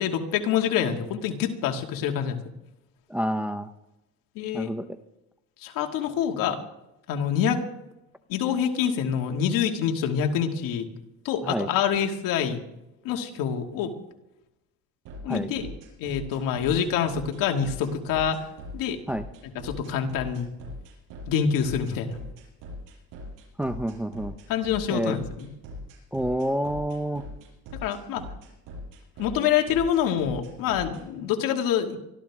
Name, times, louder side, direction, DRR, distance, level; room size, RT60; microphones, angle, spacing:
voice 1, 0.0-2.4 4.4-4.7 5.6-6.6 7.1-7.6 8.3-10.9 11.2-12.6 13.0-13.9 15.2-15.7 16.0-18.5 18.7-19.0 19.6-20.5 21.3-22.2 24.5-25.5 27.8-28.2 29.2-32.0, left 8 dB, 70° left, 3 dB, 2.4 m, -26 dB
voice 2, 3.1-3.7 4.5-4.9 11.4-11.7 15.3-15.5 19.1-19.3 23.6-24.3 24.9-25.2 26.1-27.2, equal, 5° right, 8 dB, 0.7 m, -28 dB
sound 1, 15.1-31.0, left 1 dB, 65° right, 6.9 m, -41 dB
24.0 x 14.0 x 3.7 m, 0.91 s
cardioid pair, 125°, 35 cm